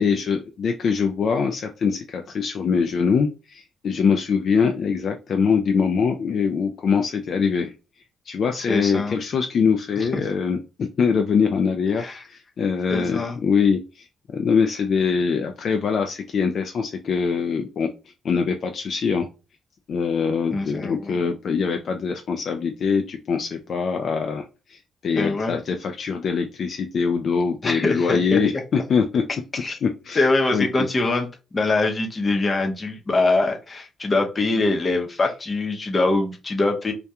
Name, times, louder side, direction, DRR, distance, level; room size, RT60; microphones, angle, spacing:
voice 1, 0.0-7.7 8.3-14.1 14.3-17.9 18.2-19.3 19.9-29.2 29.8-30.9, left 6 dB, 55° left, 4 dB, 0.3 m, -23 dB
voice 2, 8.6-9.2 10.1-10.2 12.0-12.2 12.9-13.4 20.5-21.2 25.2-25.5 27.6-28.4 29.6-29.8 30.1-31.3 31.5-36.9, left 2 dB, 30° left, 3 dB, 0.7 m, -23 dB
2.3 x 2.2 x 2.7 m, 0.30 s
cardioid pair, 90°, 0 cm